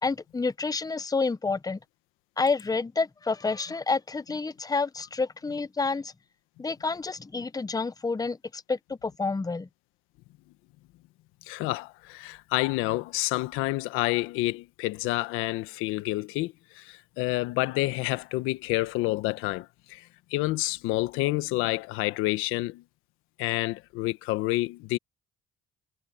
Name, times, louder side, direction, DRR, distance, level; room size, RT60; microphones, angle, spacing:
voice 1, 0.0-1.8 2.4-6.1 6.6-9.7, left 4 dB, 20° left, 0.9 m, -29 dB
voice 2, 11.5-22.8 23.4-25.0, left 19 dB, 85° left, 1.3 m, -29 dB
supercardioid pair, 70°, 21 cm